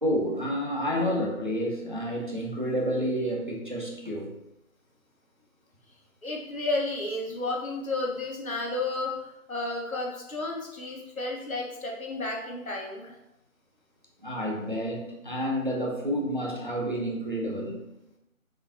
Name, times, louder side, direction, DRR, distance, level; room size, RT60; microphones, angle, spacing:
voice 1, 0.0-4.4 14.2-17.9, equal, 35° right, -1 dB, 0.7 m, -29 dB
voice 2, 6.2-13.2, left 2 dB, 75° left, -1 dB, 1.3 m, -32 dB
4.6 x 4.1 x 2.7 m, 0.88 s
figure-of-eight pair, 175°, 42 cm